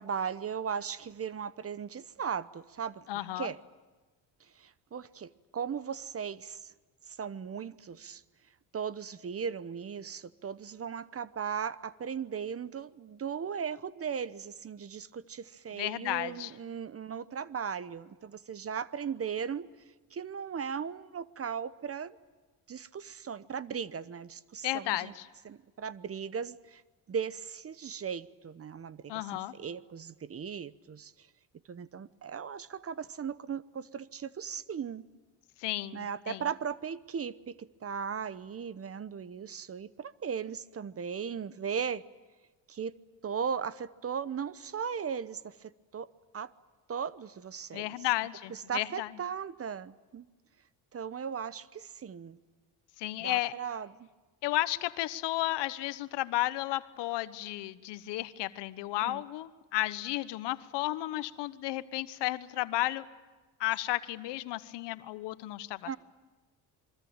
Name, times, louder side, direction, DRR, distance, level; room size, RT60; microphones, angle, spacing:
voice 1, 0.0-3.6 4.5-6.7 7.1-8.2 8.7-19.7 20.1-22.2 22.7-25.1 25.4-26.8 27.1-31.3 31.7-35.0 35.9-42.1 42.7-43.0 43.2-46.1 46.3-46.5 46.9-47.9 48.5-50.3 50.9-52.4 53.2-54.1 59.0-59.2 65.9-66.0, right 7 dB, 35° right, 0.9 m, -37 dB
voice 2, 3.1-3.5 15.8-16.5 24.6-25.3 29.1-29.5 35.6-36.4 47.7-49.1 53.0-53.5 54.4-63.0 63.6-66.0, left 16 dB, 80° left, 1.2 m, -33 dB
27.0 x 23.5 x 8.9 m
cardioid pair, 90°, 41 cm